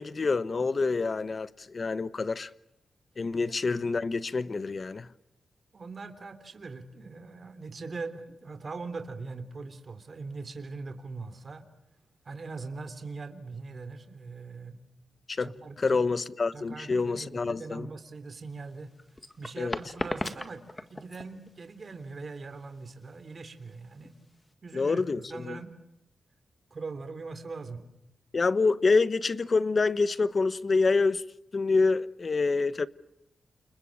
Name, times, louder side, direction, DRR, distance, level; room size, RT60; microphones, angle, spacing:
voice 1, 0.0-2.5 3.2-5.1 15.3-15.5 15.8-17.9 19.6-19.8 24.7-25.6 28.3-31.2 31.5-32.9, left 4 dB, 40° left, 1.1 m, -27 dB
voice 2, 5.7-11.7 12.2-14.8 15.4-16.0 16.5-18.9 19.4-20.6 20.9-24.1 24.6-25.7 26.7-27.8, right 4 dB, 45° right, 3.4 m, -41 dB
sound 1, 18.5-24.5, left 1 dB, 15° left, 1.9 m, -38 dB
30.0 x 28.5 x 6.5 m
wide cardioid pair, 120°, 0 cm